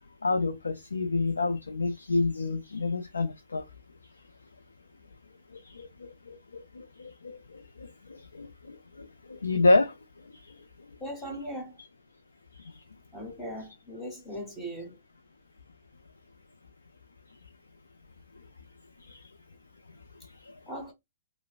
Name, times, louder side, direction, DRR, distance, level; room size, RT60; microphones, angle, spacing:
voice 1, 0.2-3.6 5.5-9.9 10.3-10.5 12.6-12.8 19.0-19.3 20.4-20.5, left 3 dB, 85° left, 0.3 m, -29 dB
voice 2, 11.0-11.8 13.1-15.0 20.7-20.9, equal, 10° left, 1.2 m, -39 dB
2.9 x 2.0 x 2.4 m
hypercardioid pair, 120°, 0 cm